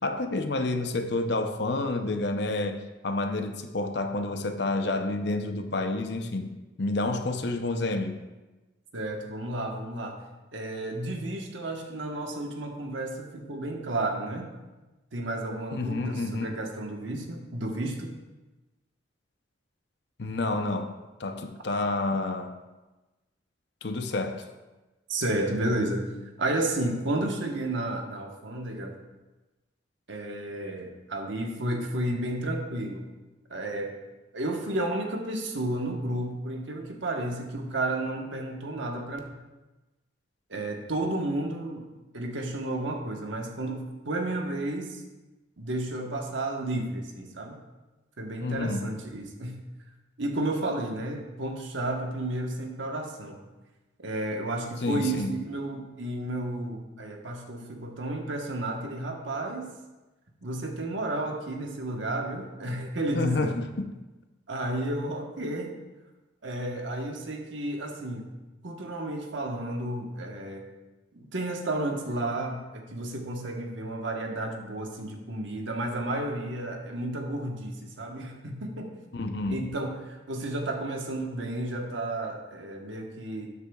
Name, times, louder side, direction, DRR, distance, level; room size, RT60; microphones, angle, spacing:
voice 1, 0.0-8.2 15.7-16.5 20.2-22.5 23.8-24.5 48.4-48.9 54.8-55.3 63.1-63.9 79.1-79.6, left 2 dB, 60° left, 7 dB, 0.7 m, -29 dB
voice 2, 8.9-10.2 10.5-14.5 15.1-18.1 20.5-20.6 25.1-26.0 26.4-29.0 30.1-33.1 33.5-34.0 34.3-39.2 40.5-41.9 42.1-45.0 45.6-47.6 48.2-49.6 50.2-53.4 54.0-59.7 60.4-63.5 64.5-65.7 66.4-68.3 68.6-70.7 71.1-78.9 79.5-83.5, right 1 dB, 70° right, 2 dB, 1.2 m, -32 dB
12.0 x 8.3 x 2.4 m, 1.1 s
head